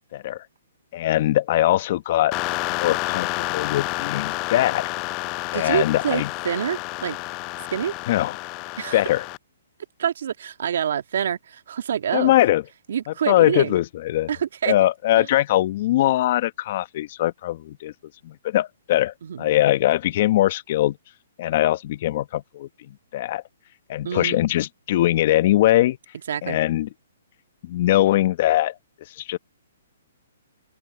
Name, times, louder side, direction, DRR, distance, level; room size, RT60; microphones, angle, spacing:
voice 1, 0.1-0.4 0.9-2.3 2.7-4.9 5.5-6.3 8.1-8.4 8.9-9.2 12.1-12.6 13.1-14.3 14.7-17.9 18.2-21.0 21.4-22.7 23.1-23.4 23.9-26.0 26.4-26.9 27.6-28.7 29.2-29.4, left 14 dB, 45° left, 1.2 m, -21 dB
sound 1, 2.3-9.4, left 25 dB, 30° left, 0.5 m, -29 dB
voice 2, 5.5-7.2 7.7-7.9 8.8-9.0 10.0-12.4 12.9-13.8 14.3-14.7 15.2-15.3 19.2-19.5 24.0-24.4 26.3-26.6, right 9 dB, 65° right, 2.0 m, -26 dB
hypercardioid pair, 140°, 0 cm